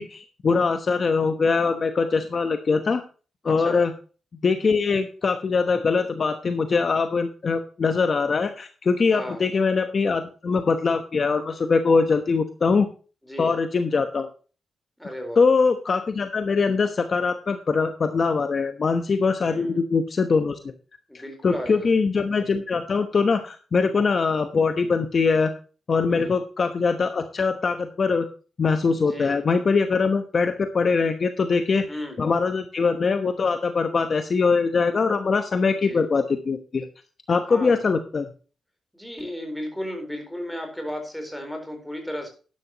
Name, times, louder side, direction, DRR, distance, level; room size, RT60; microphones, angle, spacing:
voice 1, 0.0-3.0 3.4-3.9 4.4-12.9 13.4-14.3 15.4-20.6 21.4-25.5 25.9-28.3 28.6-36.8 37.3-38.3, left 4 dB, 45° left, 8 dB, 1.0 m, -22 dB
voice 2, 3.4-3.8 9.1-9.5 13.3-13.5 15.0-15.4 19.4-19.8 21.1-21.9 26.1-26.3 29.0-29.4 31.9-32.2 35.7-36.0 37.5-37.8 38.9-42.3, equal, 5° left, 4 dB, 4.2 m, -34 dB
12.0 x 11.0 x 3.0 m, 0.36 s
wide cardioid pair, 130°, 0 cm